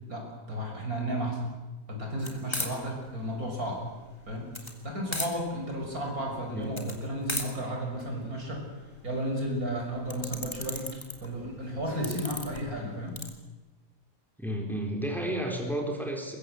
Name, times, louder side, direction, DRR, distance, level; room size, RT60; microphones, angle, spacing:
voice 1, 0.1-1.5 1.9-3.8 4.3-4.5 4.8-8.6 9.0-10.9 11.2-13.2, equal, 80° right, 1 dB, 6.7 m, -33 dB
sound 1, 2.2-13.3, left 1 dB, 20° left, 2.9 m, -39 dB
voice 2, 14.4-16.4, right 1 dB, ahead, 1 dB, 4.3 m, -32 dB
22.5 x 22.0 x 8.0 m, 1.1 s
omnidirectional pair, 1.5 m